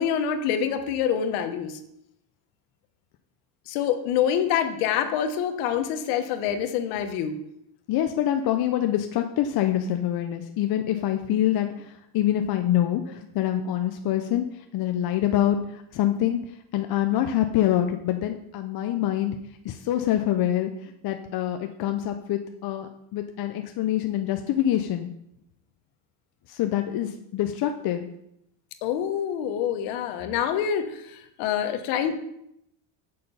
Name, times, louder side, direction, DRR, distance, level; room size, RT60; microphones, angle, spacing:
voice 1, 0.0-1.8 3.7-7.4 28.8-32.2, left 8 dB, 85° left, 8 dB, 1.1 m, -26 dB
voice 2, 7.9-16.4 16.7-19.4 19.6-25.1 26.5-28.1, left 11 dB, 50° left, 6 dB, 0.7 m, -25 dB
6.7 x 5.3 x 6.8 m, 0.79 s
cardioid pair, 115°, 49 cm